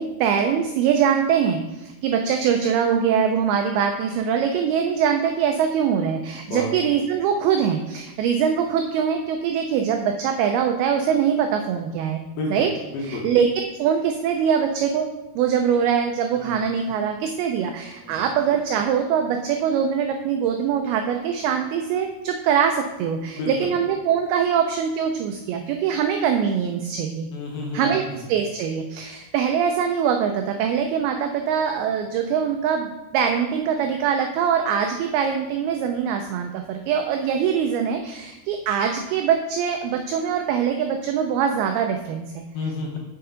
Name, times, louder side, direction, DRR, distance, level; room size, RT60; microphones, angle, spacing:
voice 1, 0.0-12.2 12.5-12.7 13.0-13.5 13.8-15.1 15.4-27.3 27.7-42.4, right 7 dB, 85° right, 4 dB, 2.2 m, -23 dB
voice 2, 12.9-13.2 16.4-16.5 18.0-18.2 23.3-23.5 27.3-28.2 42.5-43.0, left 2 dB, 70° left, -2 dB, 2.8 m, -30 dB
6.7 x 6.5 x 3.8 m, 1.0 s
omnidirectional pair, 5.0 m